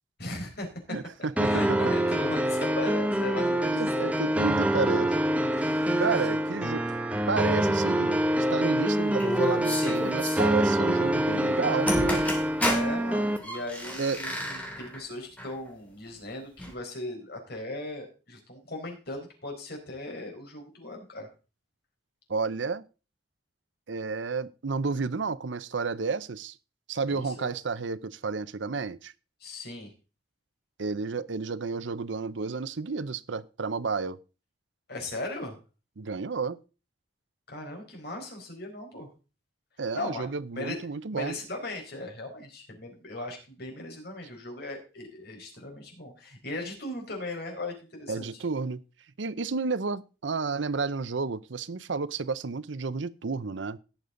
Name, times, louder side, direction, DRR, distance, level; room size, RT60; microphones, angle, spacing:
voice 1, 0.2-0.7 1.4-4.3 5.5-6.1 12.6-21.3 27.1-27.5 29.4-29.9 34.9-35.6 37.5-39.1 39.9-40.3 40.5-40.8 41.1-48.4, left 2 dB, 60° left, 2 dB, 4.6 m, -38 dB
voice 2, 0.9-1.9 3.7-5.2 6.0-6.8 7.3-12.2 14.0-14.2 22.3-22.8 23.9-26.6 26.9-29.1 30.8-34.2 36.0-36.6 39.8-41.4 48.1-48.8 49.2-53.8, right 4 dB, 90° right, 17 dB, 0.7 m, -31 dB
sound 1, 1.4-13.4, right 1 dB, 10° right, 0.9 m, -26 dB
sound 2, 9.2-10.4 11.6-11.7 11.9-12.9 13.4-15.0 15.4-15.5 16.6-16.7, left 1 dB, 10° left, 2.6 m, -31 dB
18.0 x 6.8 x 3.9 m, 0.33 s
head